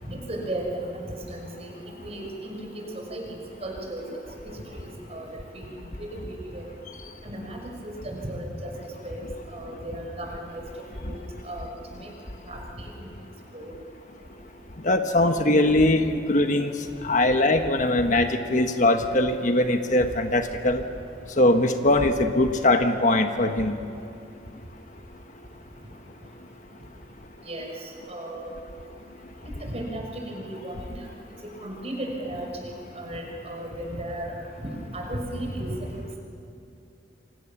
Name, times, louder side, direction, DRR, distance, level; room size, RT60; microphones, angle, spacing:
voice 1, 0.0-1.0 1.3-1.7 2.0-4.2 4.4-5.3 5.5-5.7 6.0-6.7 7.2-8.7 9.0-9.3 9.5-10.6 11.0-11.7 11.9-12.1 12.5-12.9 13.5-13.7 27.5-28.5 29.6-30.9 31.6-32.5 33.0-34.3 34.6-36.1, right 1 dB, 35° right, 1 dB, 6.1 m, -35 dB
voice 2, 14.8-16.7 17.0-20.8 21.4-23.8, left 1 dB, 45° left, 6 dB, 1.3 m, -21 dB
29.0 x 25.5 x 7.3 m, 2.6 s
head